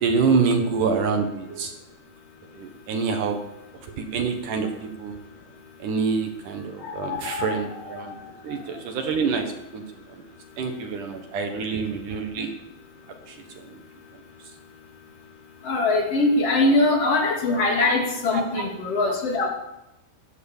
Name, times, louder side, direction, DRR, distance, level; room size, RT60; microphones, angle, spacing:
voice 1, 0.0-1.7 2.6-3.4 4.0-5.1 5.8-8.1 8.4-9.8 10.1-10.2 10.6-12.5 13.3-13.4 17.6-17.9 18.3-18.7, right 5 dB, 60° right, 4 dB, 2.4 m, -26 dB
voice 2, 6.8-8.2 15.6-19.5, left 2 dB, 40° left, 0 dB, 3.5 m, -23 dB
15.5 x 11.5 x 7.2 m, 0.91 s
omnidirectional pair, 4.9 m